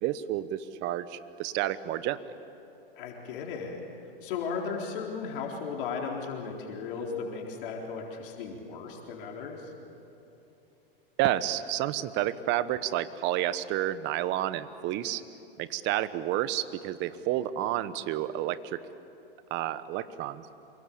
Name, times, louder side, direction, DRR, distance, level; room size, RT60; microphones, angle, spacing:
voice 1, 0.0-2.2 11.2-15.2 15.6-18.8 19.5-20.4, right 13 dB, 40° right, 14 dB, 1.2 m, -30 dB
voice 2, 2.9-3.8 4.2-9.7, left 5 dB, 60° left, 0 dB, 4.1 m, -36 dB
27.0 x 23.0 x 8.7 m, 2.9 s
hypercardioid pair, 115°, 29 cm